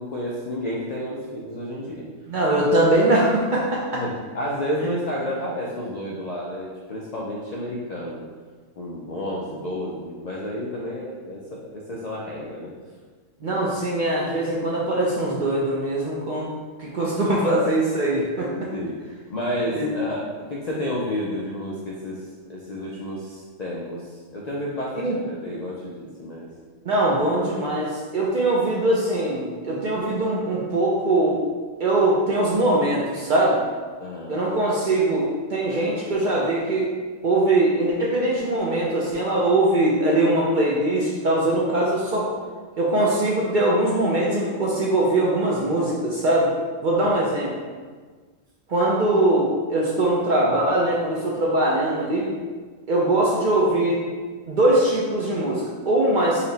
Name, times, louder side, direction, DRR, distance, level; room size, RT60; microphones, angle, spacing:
voice 1, 0.0-2.0 3.9-8.2 8.8-12.7 13.4-13.7 18.7-19.0 19.3-26.5 34.0-34.3 47.0-47.1, equal, 65° left, -4 dB, 0.4 m, -31 dB
voice 2, 2.3-4.0 13.4-16.5 16.8-18.7 19.8-19.9 25.0-25.2 26.9-31.4 31.8-33.6 34.3-36.9 37.2-42.3 42.8-46.5 46.8-47.5 48.7-52.3 52.9-54.0 54.5-56.5, right 1 dB, 60° right, -4 dB, 0.5 m, -21 dB
4.2 x 2.0 x 3.8 m, 1.5 s
omnidirectional pair, 1.3 m